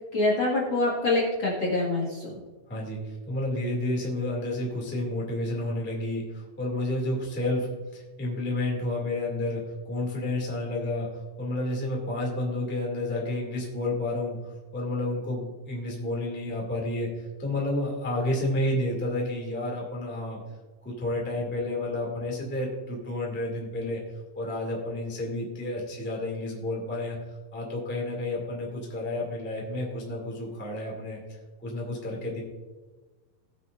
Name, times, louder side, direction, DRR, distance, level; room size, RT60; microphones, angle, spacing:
voice 1, 0.1-2.3, left 2 dB, 40° left, -4 dB, 2.1 m, -25 dB
voice 2, 2.7-20.4 20.8-24.0 24.3-32.4, left 1 dB, 5° left, -2 dB, 1.6 m, -31 dB
19.0 x 6.7 x 2.6 m, 1.3 s
omnidirectional pair, 4.1 m